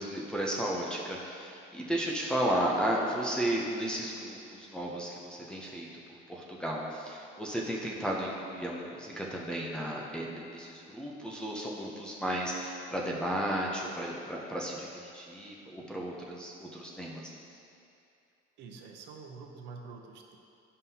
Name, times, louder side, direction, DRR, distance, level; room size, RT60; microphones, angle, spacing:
voice 1, 0.0-5.9 6.3-17.3, right 1 dB, 5° left, -4 dB, 0.5 m, -34 dB
voice 2, 18.6-20.4, right 4 dB, 60° right, 2 dB, 0.7 m, -46 dB
10.5 x 5.5 x 2.8 m, 2.6 s
cardioid pair, 175°, 21 cm